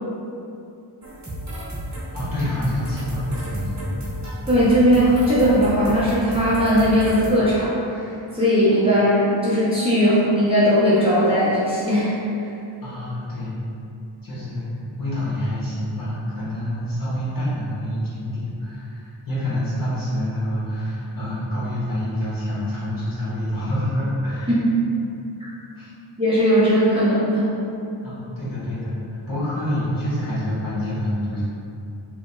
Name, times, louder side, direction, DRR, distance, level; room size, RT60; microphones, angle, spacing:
sound 1, 1.0-7.3, right 1 dB, 35° right, 0.9 m, -32 dB
voice 1, 2.1-4.0 8.7-8.8 12.8-13.6 14.2-24.5 25.7-25.9 28.0-28.9 29.3-31.4, left 1 dB, 45° left, -11 dB, 1.3 m, -27 dB
voice 2, 4.5-12.1 12.4-12.5 24.5-24.7 25.4-25.5 26.2-27.5, equal, 10° right, -11 dB, 0.6 m, -18 dB
3.0 x 2.7 x 2.2 m, 2.7 s
wide cardioid pair, 85°, 48 cm